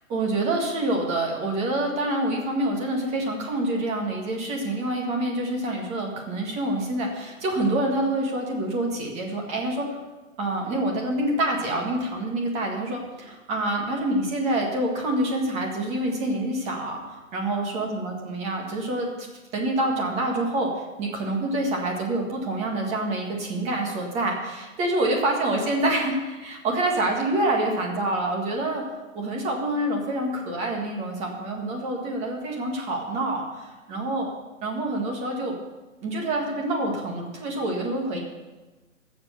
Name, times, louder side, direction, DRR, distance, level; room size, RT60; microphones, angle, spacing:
voice 1, 0.0-10.0 10.4-19.1 19.5-28.8 29.1-34.3 34.6-35.5 36.0-38.2, right 1 dB, 15° right, 0 dB, 1.8 m, -27 dB
14.0 x 7.4 x 6.7 m, 1.2 s
hypercardioid pair, 155°, 39 cm